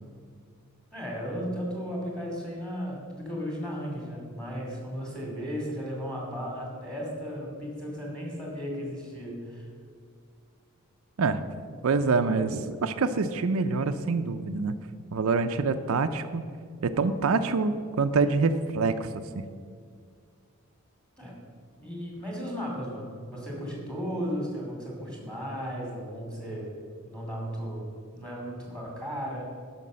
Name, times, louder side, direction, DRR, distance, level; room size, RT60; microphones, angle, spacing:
voice 1, 0.9-9.7 21.2-21.4 21.8-26.7 27.0-29.5, equal, 5° left, -2 dB, 2.5 m, -35 dB
voice 2, 11.8-14.8 15.1-16.4 16.8-19.1 19.4-19.5, right 4 dB, 70° right, 8 dB, 0.5 m, -26 dB
11.0 x 5.9 x 7.5 m, 2.1 s
head